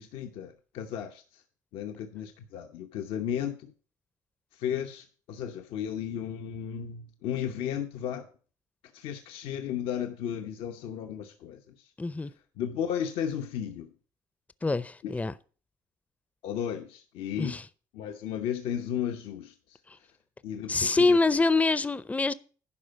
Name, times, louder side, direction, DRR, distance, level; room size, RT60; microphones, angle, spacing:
voice 1, 0.0-1.4 1.7-3.7 4.5-8.3 8.9-11.9 12.6-13.9 15.0-15.1 16.4-17.6 17.9-20.1 20.4-21.2, left 9 dB, 75° left, 0.9 m, -34 dB
voice 2, 12.0-12.3 14.6-15.3 17.4-17.6 20.7-22.3, left 3 dB, 15° left, 0.6 m, -25 dB
11.0 x 5.0 x 7.8 m
supercardioid pair, 65°, 9 cm